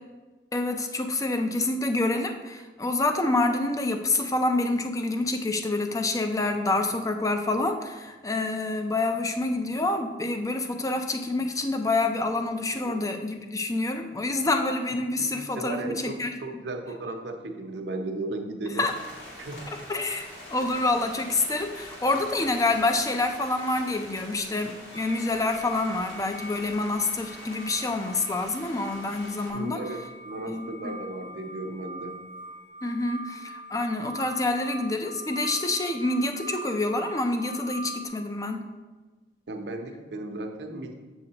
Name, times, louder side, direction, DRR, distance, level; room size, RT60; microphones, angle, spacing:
voice 1, 0.5-16.3 18.8-18.9 19.9-29.8 30.5-30.9 32.8-38.6, left 2 dB, 20° left, 6 dB, 0.5 m, -27 dB
voice 2, 15.2-18.9 19.4-19.8 29.5-32.2 39.5-40.9, right 2 dB, 80° right, 4 dB, 0.8 m, -35 dB
sound 1, 18.8-29.5, equal, 65° left, 2.2 m, -44 dB
sound 2, 24.9-38.1, right 1 dB, 40° right, 0.7 m, -42 dB
7.4 x 6.4 x 2.9 m, 1.3 s
head